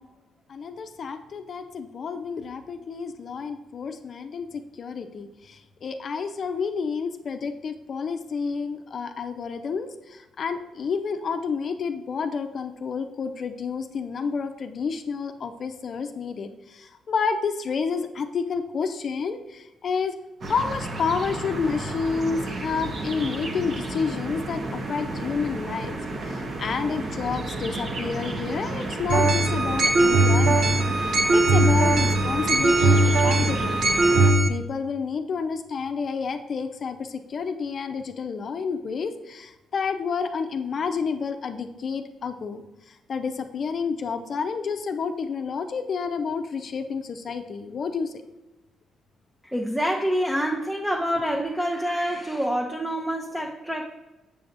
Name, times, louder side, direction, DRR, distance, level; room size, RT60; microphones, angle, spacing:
voice 1, 0.5-20.2 20.5-26.0 26.3-34.0 34.5-48.1, left 5 dB, 50° left, 8 dB, 0.6 m, -30 dB
sound 1, 20.4-34.3, right 2 dB, 50° right, 0.9 m, -32 dB
sound 2, 29.1-34.5, right 2 dB, 70° right, 0.6 m, -20 dB
voice 2, 49.4-54.0, equal, 5° right, 0 dB, 0.6 m, -27 dB
6.9 x 6.9 x 2.6 m, 1.0 s
cardioid pair, 90°, 0 cm